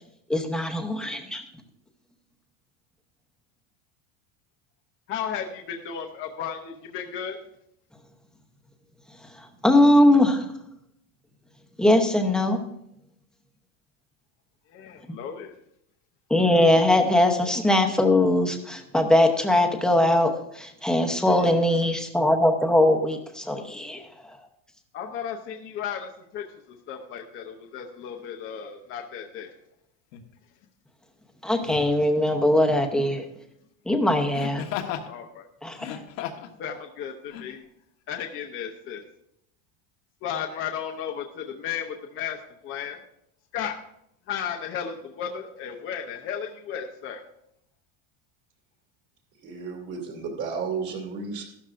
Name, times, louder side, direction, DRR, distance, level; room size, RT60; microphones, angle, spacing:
voice 1, 0.3-1.4 9.6-10.5 11.8-12.6 16.3-24.0 31.4-33.2 33.9-34.7 35.6-36.0, left 1 dB, ahead, 3 dB, 0.8 m, -21 dB
voice 2, 5.1-7.4 14.7-15.5 17.4-17.5 21.3-21.6 24.9-29.5 35.0-35.4 36.6-37.6 38.1-39.0 40.2-43.0 43.5-43.8 44.3-47.2, left 8 dB, 30° left, 2 dB, 0.7 m, -34 dB
Laughter, 30.1-30.3 31.6-32.0 34.3-35.1 35.7-36.5 37.3-37.4, left 10 dB, 85° left, 1.4 m, -34 dB
voice 3, 49.4-51.4, right 5 dB, 50° right, 0 dB, 2.3 m, -32 dB
14.5 x 12.5 x 2.5 m, 0.76 s
cardioid pair, 160°, 39 cm